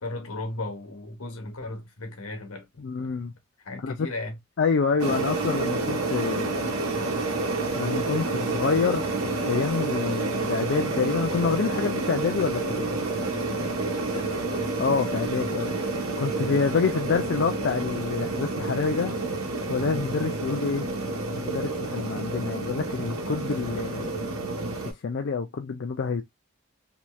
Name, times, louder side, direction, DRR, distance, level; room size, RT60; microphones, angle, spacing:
voice 1, 0.0-3.1 3.6-4.4 14.1-14.4 19.9-20.1, left 2 dB, 85° left, 1.1 m, -36 dB
voice 2, 2.8-3.3 3.8-4.1 4.6-6.8 7.7-12.9 14.8-19.1 19.7-20.9 21.3-24.2 25.0-26.2, left 5 dB, 55° left, 0.4 m, -27 dB
sound 1, 5.0-24.9, right 3 dB, 85° right, 1.0 m, -29 dB
3.1 x 2.8 x 2.2 m
head